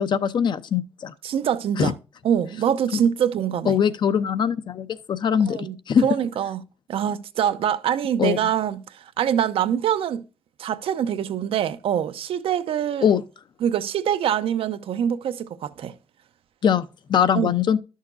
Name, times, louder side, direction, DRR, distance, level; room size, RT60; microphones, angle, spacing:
voice 1, 0.0-1.1 1.8-1.9 2.9-3.0 3.7-6.1 8.2-8.4 13.0-13.2 16.6-17.8, left 8 dB, 55° left, 0.6 m, -22 dB
voice 2, 1.2-1.9 2.2-3.8 5.5-5.8 6.0-6.6 6.9-10.2 10.6-13.1 13.6-15.9 17.3-17.5, right 9 dB, 80° right, 0.7 m, -24 dB
12.0 x 6.4 x 2.5 m
wide cardioid pair, 145°, 9 cm